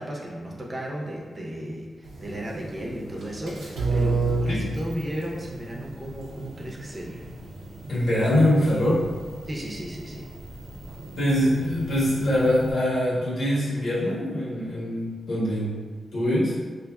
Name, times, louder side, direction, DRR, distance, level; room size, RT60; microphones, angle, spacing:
voice 1, 0.0-7.3 9.4-10.3, right 1 dB, 40° right, -2 dB, 0.7 m, -34 dB
sound 1, 2.0-12.7, right 3 dB, 85° right, 0.6 m, -32 dB
voice 2, 7.9-9.0 11.1-15.8 16.1-16.6, left 1 dB, 80° left, -8 dB, 1.4 m, -23 dB
4.1 x 2.7 x 2.3 m, 1.5 s
cardioid pair, 60°, 0 cm